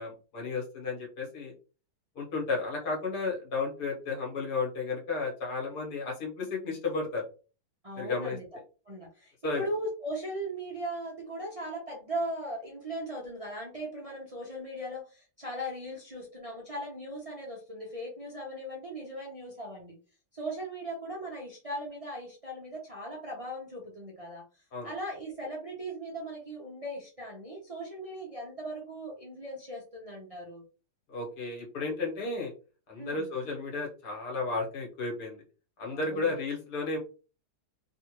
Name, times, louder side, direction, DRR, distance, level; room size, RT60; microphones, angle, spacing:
voice 1, 0.0-1.5 2.2-7.2 8.0-8.4 9.4-9.6 24.7-24.9 31.1-32.5 32.9-35.4 35.8-37.0, left 3 dB, 80° left, -1 dB, 1.7 m, -33 dB
voice 2, 7.8-8.4 8.9-19.9 20.3-24.4 24.8-30.6 33.0-33.3 35.9-36.4, right 1 dB, 35° right, -2 dB, 0.6 m, -38 dB
3.5 x 2.4 x 3.0 m, 0.35 s
omnidirectional pair, 1.7 m